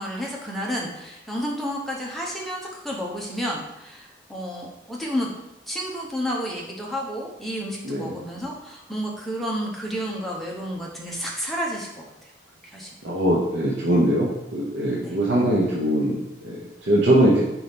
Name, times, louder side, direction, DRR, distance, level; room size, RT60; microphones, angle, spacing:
voice 1, 0.0-5.3 5.7-11.9 12.6-12.9 15.0-15.2, equal, ahead, -3 dB, 0.9 m, -31 dB
voice 2, 7.8-8.2 13.0-17.4, right 1 dB, 70° right, -4 dB, 0.9 m, -22 dB
4.6 x 4.1 x 5.2 m, 0.91 s
head